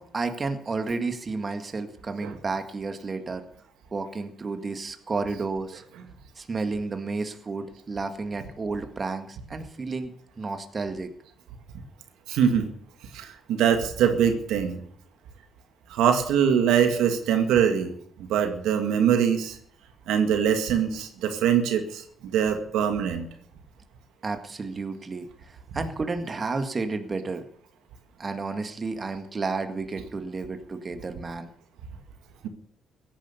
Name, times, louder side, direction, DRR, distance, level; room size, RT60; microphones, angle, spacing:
voice 1, 0.0-3.4 3.9-5.8 6.4-11.1 24.2-27.4 28.2-31.5, right 3 dB, 35° right, 7 dB, 1.8 m, -31 dB
voice 2, 12.3-12.7 13.1-14.8 15.9-17.9 18.3-19.6 20.1-23.3, right 8 dB, 90° right, 6 dB, 2.0 m, -23 dB
16.5 x 10.0 x 7.0 m, 0.63 s
cardioid pair, 90°, 0 cm